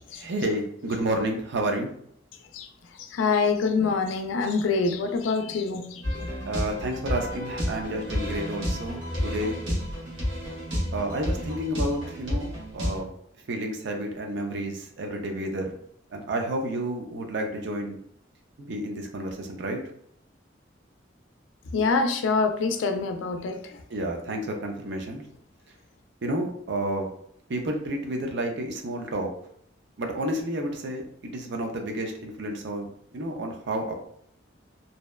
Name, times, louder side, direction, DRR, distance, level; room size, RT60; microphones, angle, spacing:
voice 1, 0.1-1.9 6.4-9.6 10.9-12.5 12.7-13.1 13.5-15.8 16.1-18.0 18.6-19.8 23.9-25.2 26.2-27.1 27.5-29.3 30.0-32.9 33.1-33.9, right 1 dB, 65° right, 3 dB, 0.5 m, -30 dB
voice 2, 3.0-6.3 21.7-23.8, left 4 dB, 80° left, 6 dB, 0.4 m, -26 dB
sound 1, 6.0-13.0, equal, 85° right, 1.1 m, -31 dB
2.7 x 2.1 x 2.2 m, 0.68 s
head